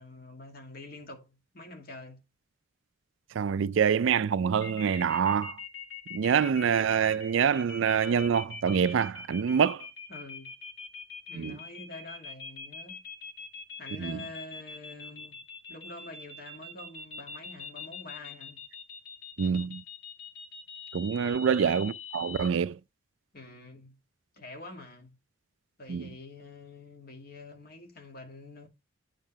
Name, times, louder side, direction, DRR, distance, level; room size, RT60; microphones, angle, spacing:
voice 1, 0.0-2.2 10.1-10.5 11.3-13.0 13.8-15.4 15.7-18.6 21.2-21.5 23.3-24.0 24.4-25.1 25.8-28.7, left 2 dB, 50° left, 2.3 m, -46 dB
voice 2, 3.3-5.6 6.1-9.9 11.3-11.6 14.0-14.2 19.4-19.8 20.9-22.8 25.9-26.1, right 7 dB, 70° right, 0.4 m, -26 dB
sound 1, 4.6-22.5, left 4 dB, 75° left, 2.6 m, -43 dB
9.0 x 3.8 x 5.6 m
head